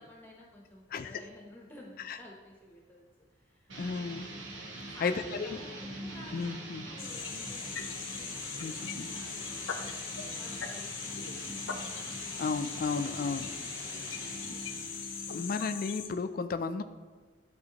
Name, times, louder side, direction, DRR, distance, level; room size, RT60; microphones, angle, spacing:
voice 1, 0.0-3.1 3.3-4.1 4.6-12.5 13.6-14.6, left 1 dB, 10° left, -2 dB, 0.8 m, -54 dB
sound 1, 3.7-16.2, right 2 dB, 75° right, 1.1 m, -43 dB
voice 2, 3.8-4.3 4.8-5.6 6.3-6.9 8.6-8.7 9.0-9.1 12.4-13.5 15.3-16.8, left 4 dB, 45° left, 9 dB, 0.3 m, -33 dB
sound 2, 7.0-16.1, left 7 dB, 80° left, 0.7 m, -40 dB
12.0 x 4.2 x 2.9 m, 1.4 s
head